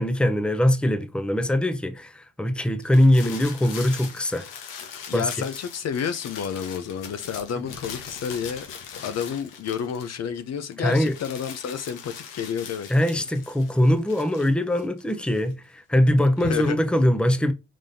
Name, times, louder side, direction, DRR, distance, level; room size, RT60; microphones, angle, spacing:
voice 1, 0.0-4.5 5.1-5.3 7.6-7.8 10.8-11.1 12.9-17.5, left 1 dB, 5° left, 0.8 m, -22 dB
sound 1, 2.8-10.4 10.7-15.5, left 7 dB, 80° left, 1.5 m, -41 dB
voice 2, 5.1-8.7 9.0-12.9 13.1-13.2 16.4-16.9, left 7 dB, 50° left, 0.8 m, -30 dB
5.2 x 3.7 x 2.8 m
supercardioid pair, 75°, 32 cm